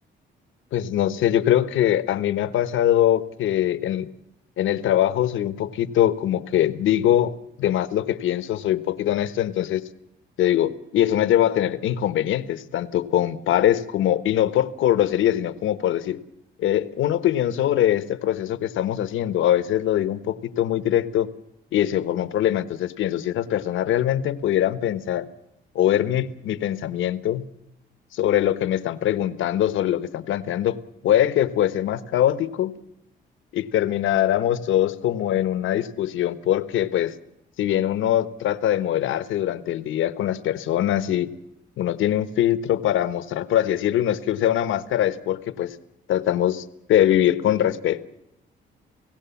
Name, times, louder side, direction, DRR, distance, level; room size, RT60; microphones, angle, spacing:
voice 1, 0.7-4.1 4.6-7.3 7.6-9.8 10.4-16.2 16.6-21.3 21.7-25.3 25.7-27.4 28.1-30.8 31.0-32.8 33.5-37.1 37.6-41.3 41.8-45.8 46.1-48.0, left 11 dB, 80° left, 14 dB, 1.2 m, -22 dB
29.5 x 16.5 x 7.1 m, 0.84 s
cardioid pair, 90°, 20 cm